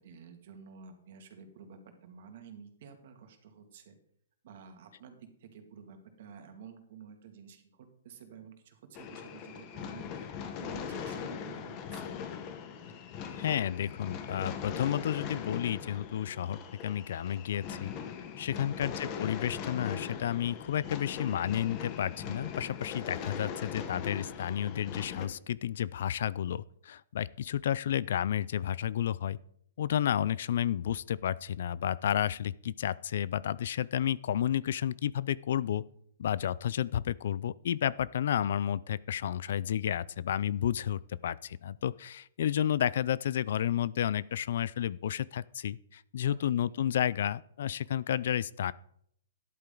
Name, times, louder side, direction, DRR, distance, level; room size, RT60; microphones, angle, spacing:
voice 1, 0.0-3.9 4.4-12.3 18.5-19.0 46.3-46.8, right 7 dB, 50° right, 6 dB, 2.3 m, -51 dB
sound 1, 8.9-25.3, left 7 dB, 25° left, 1.3 m, -40 dB
voice 2, 13.3-17.9 18.4-29.4 29.8-35.8 36.2-48.7, left 10 dB, 55° left, 20 dB, 0.4 m, -31 dB
13.0 x 11.0 x 3.9 m, 0.69 s
hypercardioid pair, 165°, 0 cm